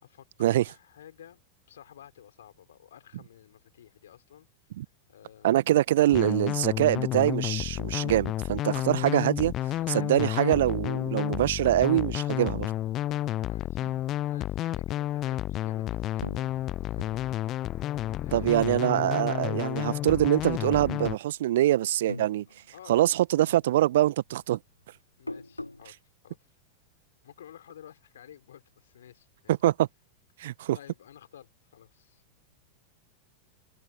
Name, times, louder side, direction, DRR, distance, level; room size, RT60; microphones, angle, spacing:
voice 1, 0.0-1.4 1.7-4.5 5.1-5.8 9.7-10.1 13.0-17.2 17.6-18.7 22.7-23.0 25.2-26.4 27.2-29.6 30.7-32.2, left 10 dB, 60° left, 5.4 m, -52 dB
voice 2, 5.4-9.5 9.9-12.7 18.3-22.4 22.9-24.6 29.5-29.9 30.4-30.8, right 13 dB, 55° right, 1.3 m, -24 dB
sound 1, 6.1-21.2, left 13 dB, 35° left, 0.3 m, -31 dB
sound 2, 16.2-19.1 19.4-20.2 20.7-21.6 21.9-23.2 23.5-25.9, left 2 dB, 85° left, 0.9 m, -43 dB
figure-of-eight pair, 90°, 0 cm